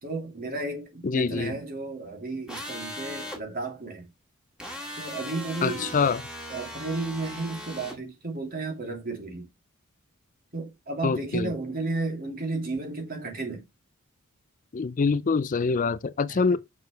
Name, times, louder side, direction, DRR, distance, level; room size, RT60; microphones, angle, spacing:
voice 1, 0.0-4.1 5.0-6.0 6.5-9.5 10.5-13.7 16.3-16.6, right 3 dB, 45° right, 2.9 m, -33 dB
voice 2, 1.0-1.6 5.6-6.2 11.0-11.5 14.7-16.6, left 4 dB, 40° left, 0.4 m, -25 dB
sound 1, 2.5-3.4 4.6-8.0, equal, 5° right, 2.3 m, -38 dB
6.6 x 6.4 x 3.3 m
head